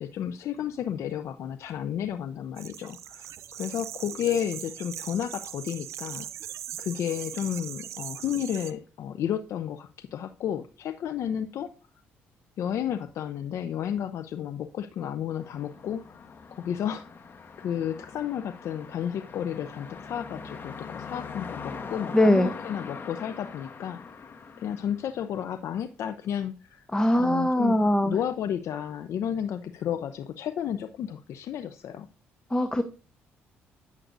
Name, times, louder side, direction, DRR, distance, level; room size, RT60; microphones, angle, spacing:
voice 1, 0.0-6.3 6.8-11.7 12.6-17.0 17.6-24.3 24.6-26.9 27.2-32.1, left 9 dB, 65° left, 10 dB, 0.6 m, -32 dB
sound 1, 2.6-8.7, right 11 dB, 70° right, 0.8 m, -40 dB
sound 2, 15.4-25.6, left 5 dB, 45° left, 1.5 m, -42 dB
voice 2, 22.1-22.5 26.9-28.2 32.5-32.8, left 1 dB, 15° left, 10 dB, 0.9 m, -21 dB
9.3 x 7.4 x 2.6 m, 0.35 s
supercardioid pair, 65°, 5 cm